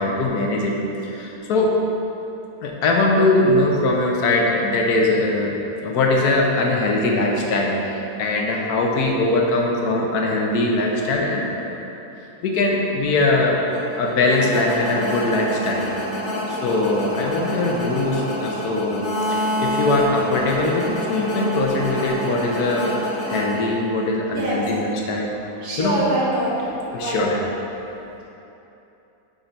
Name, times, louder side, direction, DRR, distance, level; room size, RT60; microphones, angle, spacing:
voice 1, 0.0-1.7 2.6-5.6 5.8-11.8 12.4-13.6 13.9-15.9 16.5-22.9 23.2-25.3 25.8-26.0 26.9-27.4, left 2 dB, 75° left, -1 dB, 1.3 m, -21 dB
sound 1, 13.7-24.1, equal, 50° left, 1.0 m, -28 dB
voice 2, 24.3-24.6 25.6-26.5 26.9-27.4, right 1 dB, 75° right, -6 dB, 1.8 m, -24 dB
5.6 x 4.2 x 5.1 m, 3.0 s
omnidirectional pair, 1.7 m